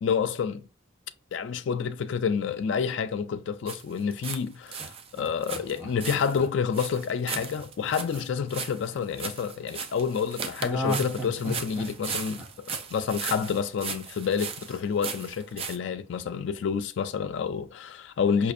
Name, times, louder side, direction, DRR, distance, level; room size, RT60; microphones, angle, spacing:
voice 1, 0.0-0.6 1.3-12.4 12.9-18.5, left 6 dB, 60° left, 0.3 m, -29 dB
sound 1, 3.7-4.4 4.7-15.8, right 6 dB, 30° right, 0.4 m, -37 dB
Laughter, 4.8-9.0 10.6-13.6 13.9-14.0, equal, 5° right, 0.8 m, -36 dB
4.9 x 2.4 x 2.5 m
head